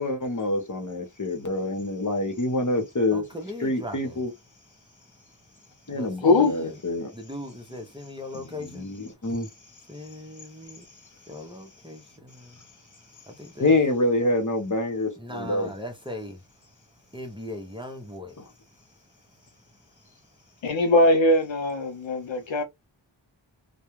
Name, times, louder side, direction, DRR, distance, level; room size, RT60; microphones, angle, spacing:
voice 1, 0.0-3.2 3.6-4.3 5.9-7.1 8.3-9.5 13.6-15.7, left 2 dB, 40° left, 1.0 m, -26 dB
voice 2, 3.1-4.2 4.9-5.2 5.7-6.8 7.1-8.9 9.9-10.9 11.3-13.7 15.2-16.4 17.1-18.5, left 1 dB, 10° right, 0.7 m, -39 dB
voice 3, 6.2-6.7 20.6-22.6, left 2 dB, 75° left, 0.6 m, -21 dB
2.3 x 2.2 x 3.0 m
wide cardioid pair, 50°, 46 cm